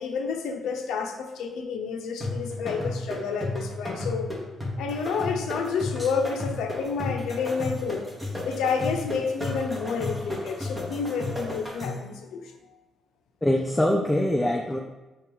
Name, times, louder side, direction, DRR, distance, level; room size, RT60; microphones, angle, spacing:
voice 1, 0.0-4.3 4.8-8.0 8.4-12.5, left 5 dB, 85° left, 4 dB, 0.5 m, -29 dB
sound 1, 2.2-12.1, left 2 dB, 15° right, 0.9 m, -33 dB
voice 2, 13.4-14.8, left 1 dB, 10° left, 1 dB, 0.3 m, -23 dB
4.3 x 2.3 x 3.5 m, 1.1 s
cardioid pair, 90°, 0 cm